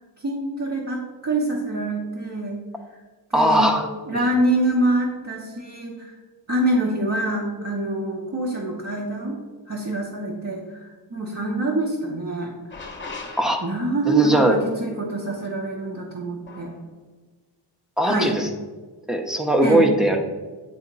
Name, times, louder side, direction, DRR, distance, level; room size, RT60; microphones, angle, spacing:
voice 1, 0.2-2.6 3.3-3.7 4.1-6.2 6.5-9.4 9.7-12.5 12.8-13.0 13.6-16.7 18.0-18.3 19.6-19.8, right 2 dB, 40° right, -3 dB, 1.1 m, -25 dB
voice 2, 3.3-3.9 4.1-4.2 13.4-13.6 14.1-14.6 18.0-18.5 19.1-20.2, right 1 dB, ahead, 3 dB, 0.8 m, -20 dB
sound 1, 12.7-14.1 16.5-16.8, left 3 dB, 25° left, 0.9 m, -38 dB
8.7 x 3.6 x 5.4 m, 1.3 s
wide cardioid pair, 140°, 44 cm